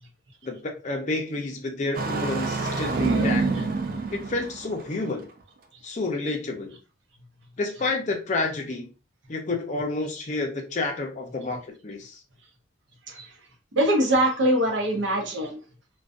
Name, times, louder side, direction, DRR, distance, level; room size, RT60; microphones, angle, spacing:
voice 1, 0.4-3.5 4.1-5.3 5.8-6.7 7.6-8.9 9.3-12.2, left 3 dB, 35° left, 0.5 m, -29 dB
Engine starting, 1.9-5.0, right 3 dB, 45° right, 0.3 m, -26 dB
voice 2, 2.6-3.3 13.1-13.3 13.7-15.6, right 1 dB, 65° right, 0.7 m, -24 dB
2.5 x 2.2 x 2.3 m
head